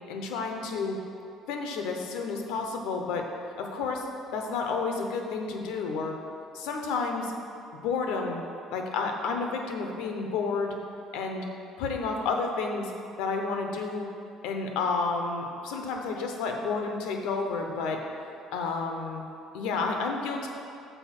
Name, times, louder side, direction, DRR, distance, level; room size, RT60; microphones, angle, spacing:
voice 1, 0.1-1.0 1.5-3.3 3.6-4.1 4.3-6.2 6.5-7.3 7.8-8.4 8.7-10.7 11.1-11.5 11.8-12.9 13.2-14.1 14.4-18.0 18.5-19.2 19.5-20.5, left 4 dB, 80° left, 3 dB, 0.9 m, -30 dB
6.9 x 4.4 x 5.9 m, 2.5 s
cardioid pair, 165°, 0 cm